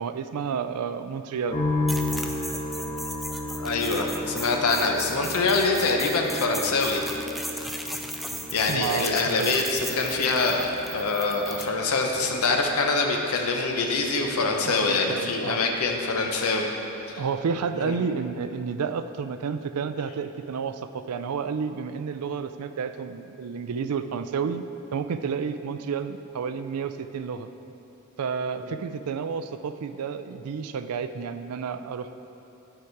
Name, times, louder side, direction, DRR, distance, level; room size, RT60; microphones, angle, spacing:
voice 1, 0.0-1.6 8.7-9.6 14.7-15.6 17.2-24.6 24.9-27.5 28.2-32.1, right 6 dB, 90° right, 10 dB, 0.4 m, -30 dB
sound 1, 1.5-16.8 17.0-17.9, left 1 dB, 25° left, 1.6 m, -35 dB
sound 2, 1.9-11.7, equal, ahead, 0.4 m, -37 dB
voice 2, 3.5-7.0 8.5-16.7 17.1-17.2 17.8-18.0 28.7-28.8, left 3 dB, 75° left, 2 dB, 0.8 m, -25 dB
11.0 x 4.9 x 4.6 m, 2.9 s
head